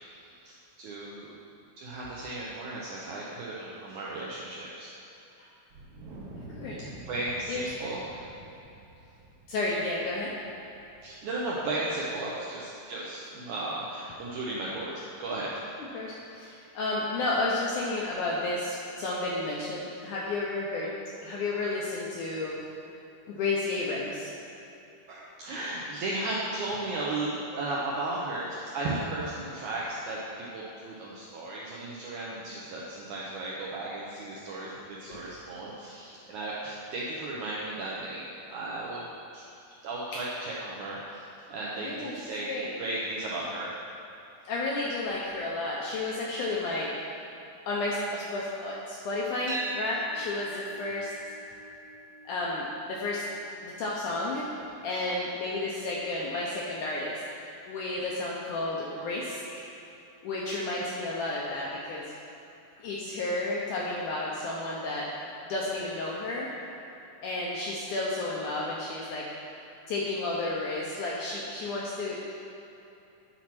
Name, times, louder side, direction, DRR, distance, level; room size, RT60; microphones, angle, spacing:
voice 1, 0.8-1.4 1.8-4.9 7.1-8.3 11.0-15.5 25.1-39.0 39.3-39.4 39.8-42.5 42.8-43.7 54.9-55.0 60.6-60.8, right 2 dB, 75° right, -5 dB, 1.8 m, -35 dB
Wind, 5.7-12.2, right 2 dB, 60° right, 2.2 m, -48 dB
voice 2, 6.5-6.9 7.5-7.7 9.5-10.3 15.9-20.9 21.2-22.6 23.3-24.3 35.1-35.2 40.1-40.2 41.8-42.2 42.5-42.7 44.5-47.0 47.7-51.1 52.3-53.2 53.6-54.5 54.8-59.7 60.2-62.1 62.8-65.1 65.5-66.5 67.2-69.3 69.9-72.2, left 2 dB, 75° left, -4 dB, 1.8 m, -32 dB
sound 1, 49.5-57.6, right 1 dB, 40° right, 0.9 m, -43 dB
9.6 x 4.4 x 5.9 m, 2.9 s
omnidirectional pair, 4.4 m